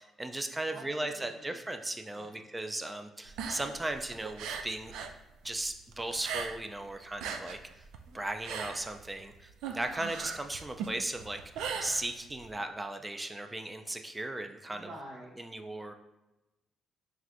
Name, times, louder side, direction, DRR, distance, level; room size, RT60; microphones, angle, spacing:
voice 1, 0.0-4.9 5.4-7.9 8.1-14.9 15.4-15.9, right 2 dB, 15° right, 6 dB, 0.4 m, -37 dB
voice 2, 0.7-1.6 2.1-2.4 8.1-8.2 14.7-15.3, right 1 dB, 75° right, -3 dB, 1.0 m, -48 dB
sound 1, 3.2-5.2 5.5-6.8 7.1-12.5, right 6 dB, 90° right, 0.3 m, -39 dB
4.7 x 3.2 x 2.5 m, 1.0 s
cardioid pair, 90°, 0 cm